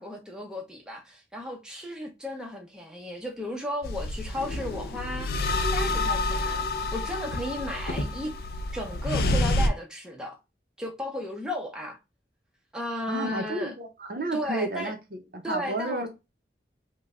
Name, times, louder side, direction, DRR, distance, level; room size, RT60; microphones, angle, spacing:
voice 1, 0.0-5.3 5.6-8.3 8.7-10.4 10.8-12.0 12.7-13.7 14.3-14.9 15.4-16.1, left 1 dB, 5° right, 0.6 m, -35 dB
sound 1, 3.8-9.7, left 2 dB, 60° left, 0.4 m, -28 dB
Drawer open or close, 4.3-5.3 5.6-8.2 9.1-9.3 9.7-9.8, left 1 dB, 85° left, 0.8 m, -39 dB
voice 2, 13.1-16.1, right 1 dB, 55° right, 0.6 m, -32 dB
3.1 x 2.2 x 3.6 m
head